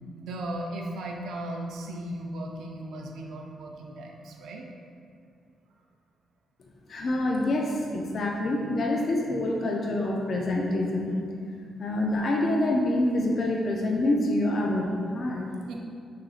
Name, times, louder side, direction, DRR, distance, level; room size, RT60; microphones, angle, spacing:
voice 1, 0.1-4.7 15.7-15.8, right 1 dB, 85° right, 1 dB, 0.4 m, -36 dB
voice 2, 6.9-11.1 11.8-15.5, left 1 dB, 40° left, -1 dB, 0.3 m, -26 dB
5.6 x 2.5 x 2.4 m, 2.3 s
cardioid pair, 155°, 0 cm